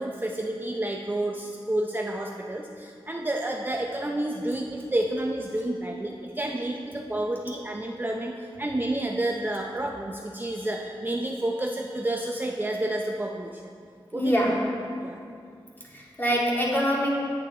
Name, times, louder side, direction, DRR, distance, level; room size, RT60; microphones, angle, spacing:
voice 1, 0.0-13.6 14.1-14.3 15.0-15.2, right 1 dB, 20° right, 0 dB, 0.6 m, -30 dB
voice 2, 14.1-14.6 15.9-17.1, equal, 20° left, -5 dB, 2.3 m, -24 dB
9.8 x 8.4 x 3.9 m, 2.3 s
wide cardioid pair, 90°, 10 cm